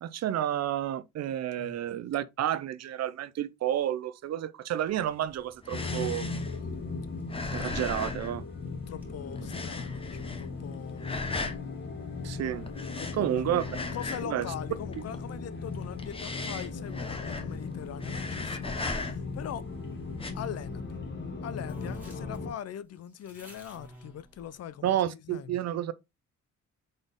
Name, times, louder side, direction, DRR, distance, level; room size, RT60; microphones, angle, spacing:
voice 1, 0.0-6.3 7.5-8.4 12.2-12.7 13.1-13.8 14.3-14.4 24.8-25.9, right 11 dB, 60° right, 0.6 m, -30 dB
voice 2, 1.3-1.7 8.9-11.4 13.0-13.6 13.9-19.7 20.3-20.8 21.4-25.6, left 10 dB, 55° left, 0.6 m, -42 dB
sound 1, 5.0-9.0 9.3-10.6 11.0-11.6 12.7-14.4 14.7-15.3 15.8-17.7 17.9-19.4 20.1-20.3, left 3 dB, 20° left, 0.9 m, -37 dB
sound 2, 5.7-22.5, left 4 dB, 40° left, 1.2 m, -38 dB
sound 3, 5.8-18.9 19.6-21.1 21.3-21.4 21.7-24.8, right 1 dB, 5° right, 2.3 m, -55 dB
3.9 x 3.9 x 3.5 m
cardioid pair, 90°, 30 cm